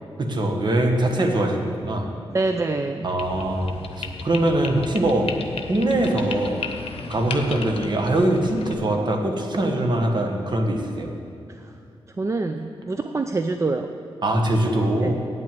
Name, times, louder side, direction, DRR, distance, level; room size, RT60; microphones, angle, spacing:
voice 1, 0.2-2.1 3.0-5.3 5.7-6.7 7.1-11.1 14.2-15.1, right 1 dB, 50° right, 3 dB, 1.5 m, -22 dB
voice 2, 2.3-3.1 11.5-11.7 12.2-13.9 15.0-15.1, right 3 dB, 30° right, 7 dB, 0.5 m, -25 dB
sound 1, 3.2-8.7, left 5 dB, 75° left, 0.8 m, -35 dB
9.0 x 7.6 x 7.7 m, 2.5 s
cardioid pair, 70°, 10 cm